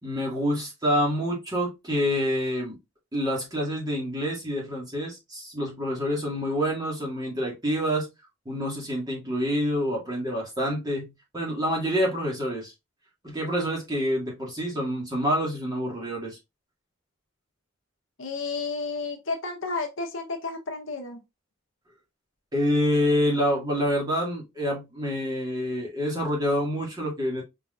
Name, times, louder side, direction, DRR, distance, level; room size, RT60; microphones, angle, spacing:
voice 1, 0.0-2.8 3.1-8.1 8.5-12.7 13.2-16.4 22.5-27.4, equal, 20° right, 1.9 m, -27 dB
voice 2, 18.2-21.2, left 4 dB, 65° left, 1.0 m, -32 dB
4.8 x 3.9 x 2.4 m
head